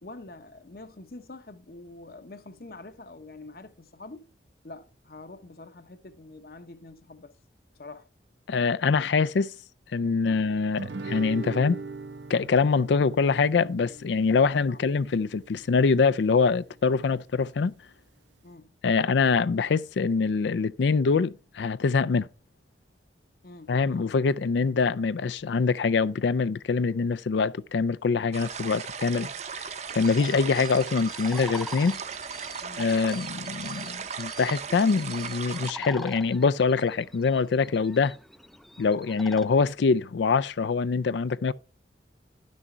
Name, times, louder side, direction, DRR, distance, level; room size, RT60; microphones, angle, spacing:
voice 1, 0.0-4.3 4.6-7.3 7.7-8.1 10.2-10.4 14.7-14.8 18.4-18.7 23.4-24.1 32.6-32.9, left 2 dB, 55° left, 0.9 m, -46 dB
voice 2, 8.5-9.5 9.9-11.8 12.3-17.7 18.8-22.3 23.7-32.0 32.8-38.2 38.8-41.5, left 4 dB, 80° left, 0.4 m, -24 dB
Guitar, 10.8-15.8, right 4 dB, 85° right, 0.8 m, -40 dB
sound 1, 28.3-35.7, right 6 dB, 40° right, 0.7 m, -37 dB
sound 2, 29.9-39.5, equal, ahead, 0.4 m, -45 dB
11.0 x 6.3 x 4.4 m
head